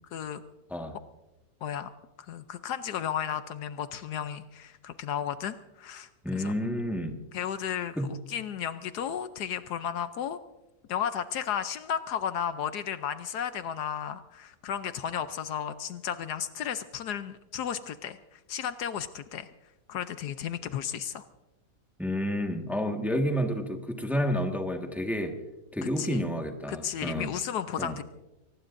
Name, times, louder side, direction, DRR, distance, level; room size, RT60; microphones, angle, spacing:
voice 1, 0.1-0.4 1.6-1.9 2.3-6.5 7.3-7.9 8.3-10.4 10.9-19.5 19.9-21.2 26.0-26.2 26.7-28.0, left 9 dB, 75° left, 11 dB, 1.2 m, -34 dB
voice 2, 6.2-7.2 7.9-8.1 22.0-25.3 25.7-27.4 27.8-28.0, equal, ahead, 3 dB, 1.4 m, -30 dB
24.5 x 19.5 x 2.6 m, 1.0 s
omnidirectional pair, 1.8 m